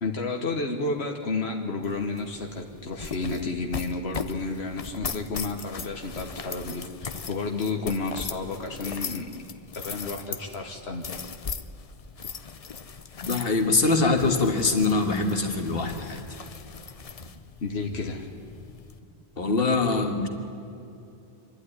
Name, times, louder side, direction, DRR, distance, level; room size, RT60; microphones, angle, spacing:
voice 1, 0.0-9.3 9.7-11.2 17.6-18.3, left 3 dB, 85° left, 2 dB, 1.6 m, -31 dB
sound 1, 1.8-19.0, left 5 dB, 40° left, 0.7 m, -39 dB
voice 2, 13.2-16.4 19.4-20.3, left 3 dB, 65° left, 4 dB, 1.9 m, -23 dB
26.0 x 12.0 x 9.9 m, 2.6 s
omnidirectional pair, 1.1 m